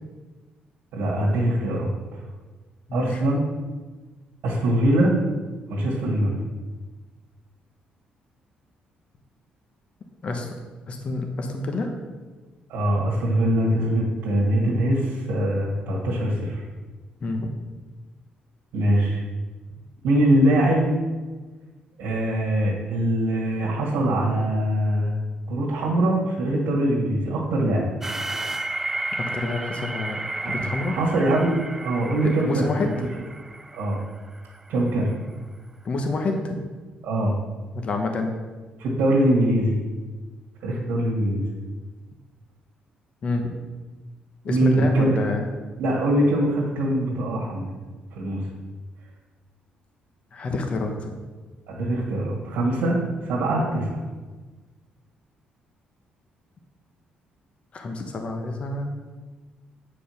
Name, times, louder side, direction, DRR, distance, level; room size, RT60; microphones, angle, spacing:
voice 1, 0.9-2.2 2.9-3.4 4.4-5.1 5.7-6.4 12.7-16.6 18.7-19.2 20.0-20.9 22.0-25.1 25.5-27.8 30.4-32.7 32.9-33.1 33.7-34.0 34.7-35.1 37.0-37.4 38.8-39.8 40.6-41.4 44.5-45.1 45.8-47.6 48.1-48.4 51.7-54.0, right 1 dB, 90° right, -4 dB, 2.0 m, -22 dB
voice 2, 2.9-3.3 10.2-10.5 10.9-11.9 17.2-17.5 29.2-30.9 32.2-33.1 35.8-36.6 37.7-38.3 43.2-43.5 44.4-45.5 50.3-51.1 57.7-58.9, left 2 dB, 40° left, 4 dB, 1.1 m, -28 dB
sound 1, 28.0-34.9, right 2 dB, 10° right, 0.3 m, -33 dB
8.8 x 5.2 x 6.5 m, 1.3 s
cardioid pair, 140°, 3 cm